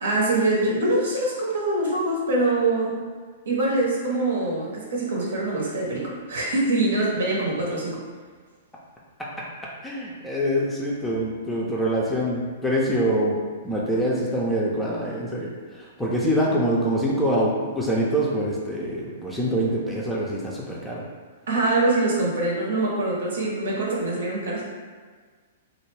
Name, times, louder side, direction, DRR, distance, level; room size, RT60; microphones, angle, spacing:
voice 1, 0.0-3.0 3.4-8.0 21.5-24.6, right 2 dB, 70° right, -4 dB, 0.8 m, -24 dB
voice 2, 9.8-13.4 13.6-21.0, equal, 5° left, -5 dB, 0.5 m, -25 dB
2.4 x 2.1 x 3.2 m, 1.5 s
figure-of-eight pair, 110°, 0 cm